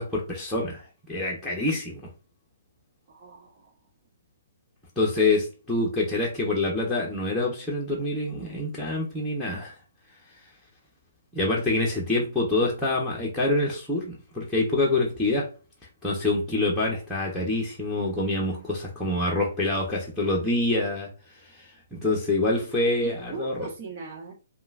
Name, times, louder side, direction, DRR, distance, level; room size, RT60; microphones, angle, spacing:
voice 1, 0.0-2.1 5.0-9.7 11.3-15.5 16.0-21.1 21.5-23.7, left 2 dB, ahead, -5 dB, 1.1 m, -26 dB
voice 2, 3.1-3.7 23.0-24.3, right 3 dB, 40° right, 1 dB, 1.5 m, -39 dB
5.2 x 2.5 x 2.5 m, 0.35 s
figure-of-eight pair, 125°, 0 cm